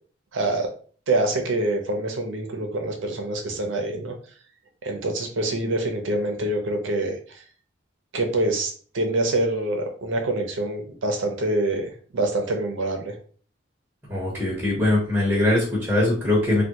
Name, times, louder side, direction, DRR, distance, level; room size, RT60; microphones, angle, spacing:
voice 1, 0.3-0.7 1.1-4.1 4.8-7.4 8.1-13.1, right 2 dB, 70° right, 3 dB, 0.6 m, -25 dB
voice 2, 14.1-16.6, left 1 dB, 10° right, -6 dB, 0.9 m, -21 dB
3.4 x 2.3 x 2.8 m, 0.43 s
head